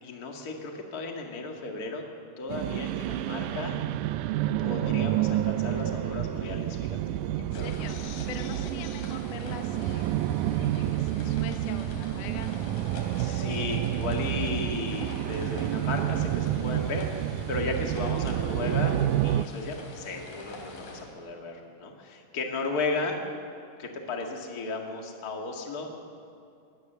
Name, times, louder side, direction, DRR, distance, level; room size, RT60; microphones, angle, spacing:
voice 1, 0.0-2.0 2.4-3.8 4.6-7.0 7.5-9.1 13.1-23.2 23.8-25.9, left 3 dB, 30° left, 1 dB, 2.1 m, -35 dB
In the belly of the beast, 2.5-19.5, right 13 dB, 80° right, 1.9 m, -29 dB
voice 2, 7.4-8.0 8.3-10.4 10.7-12.5, left 8 dB, 60° left, 6 dB, 2.1 m, -44 dB
sound 1, 7.5-21.0, left 2 dB, 80° left, 4.7 m, -44 dB
22.0 x 18.0 x 6.9 m, 2.4 s
omnidirectional pair, 3.8 m